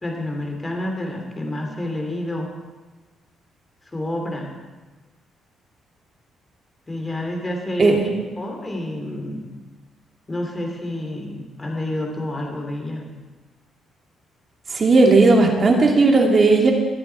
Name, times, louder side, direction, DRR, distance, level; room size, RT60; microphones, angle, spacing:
voice 1, 0.0-2.5 3.9-4.5 6.9-8.0 8.4-9.5 10.3-13.1, left 1 dB, 20° left, 2 dB, 2.9 m, -29 dB
voice 2, 7.8-8.1 14.7-16.7, right 3 dB, 40° right, 1 dB, 2.8 m, -15 dB
21.5 x 8.4 x 4.6 m, 1.2 s
cardioid pair, 90°, 0 cm